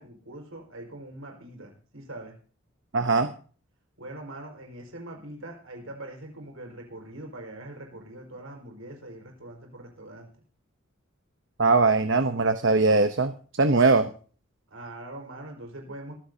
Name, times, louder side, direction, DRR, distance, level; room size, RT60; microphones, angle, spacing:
voice 1, 0.0-2.4 4.0-10.3 14.7-16.1, right 1 dB, 85° right, 2 dB, 5.1 m, -42 dB
voice 2, 2.9-3.3 11.6-13.3 13.6-14.1, right 3 dB, 60° right, 8 dB, 0.9 m, -21 dB
22.5 x 15.0 x 2.8 m, 0.41 s
head